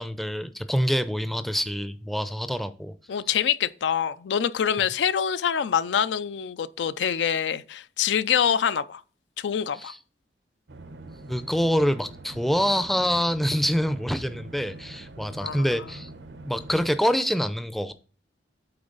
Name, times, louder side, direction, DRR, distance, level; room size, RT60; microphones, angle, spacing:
voice 1, 0.0-2.9 9.8-10.0 11.3-16.1 16.5-17.9, equal, ahead, 0.4 m, -26 dB
voice 2, 3.1-9.0 9.4-9.9 15.4-15.7, left 8 dB, 85° left, 0.4 m, -25 dB
sound 1, 10.7-17.0, right 2 dB, 85° right, 0.8 m, -43 dB
8.8 x 4.0 x 3.9 m
head